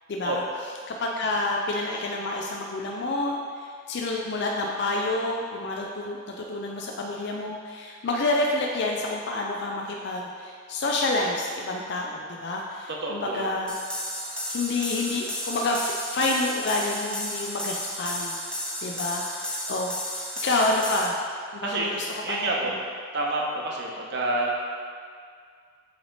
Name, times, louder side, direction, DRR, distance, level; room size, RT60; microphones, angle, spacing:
voice 1, 0.1-0.4 0.9-13.8 14.5-18.3 18.8-21.1 21.5-22.7, left 2 dB, 60° left, 0 dB, 0.5 m, -28 dB
voice 2, 13.0-13.5 21.6-22.8 23.1-24.5, right 2 dB, 55° right, -3 dB, 0.9 m, -28 dB
sound 1, 13.7-21.1, equal, 5° left, 0.7 m, -33 dB
7.8 x 3.4 x 4.0 m, 2.1 s
head